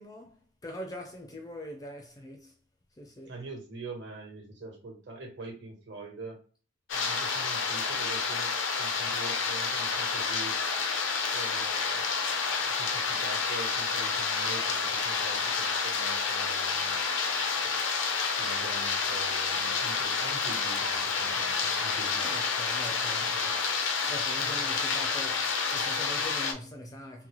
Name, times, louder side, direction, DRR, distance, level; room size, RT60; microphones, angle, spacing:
voice 1, 0.0-2.6 3.0-3.4 22.2-23.7 24.1-27.3, left 1 dB, 15° left, 0.4 m, -43 dB
voice 2, 3.3-6.4 6.9-10.6 11.3-12.0 12.6-17.0 17.6-17.8 18.3-22.5, right 2 dB, 60° right, 1.2 m, -44 dB
sound 1, 6.9-26.5, left 5 dB, 70° left, 0.5 m, -29 dB
3.9 x 2.0 x 3.0 m
head